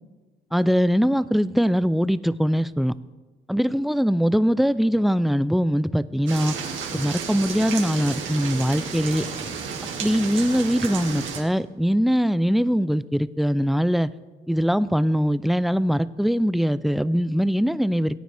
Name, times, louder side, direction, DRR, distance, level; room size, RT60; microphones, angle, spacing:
voice 1, 0.5-2.9 3.5-6.5 6.9-9.3 10.0-14.1 14.5-18.2, equal, ahead, 0.3 m, -22 dB
sound 1, 6.3-11.4, right 6 dB, 75° right, 2.0 m, -32 dB
17.5 x 9.2 x 3.4 m
cardioid pair, 90°, 20 cm